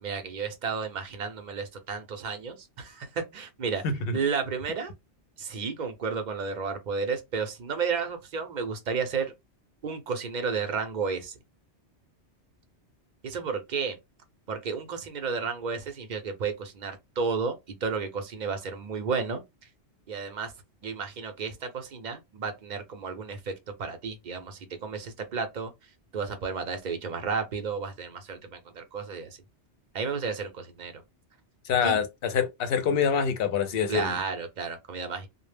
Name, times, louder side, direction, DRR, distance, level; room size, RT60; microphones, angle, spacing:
voice 1, 0.0-3.8 4.1-4.9 5.4-9.3 9.8-11.3 13.2-14.0 14.5-17.5 17.8-19.4 20.1-20.5 20.8-23.5 23.8-25.7 26.1-29.4 29.9-30.9 31.8-32.0 33.9-35.3, right 5 dB, 50° right, 0.6 m, -32 dB
voice 2, 3.8-4.2 31.6-34.1, left 6 dB, 65° left, 0.7 m, -26 dB
2.0 x 2.0 x 3.2 m
omnidirectional pair, 1.2 m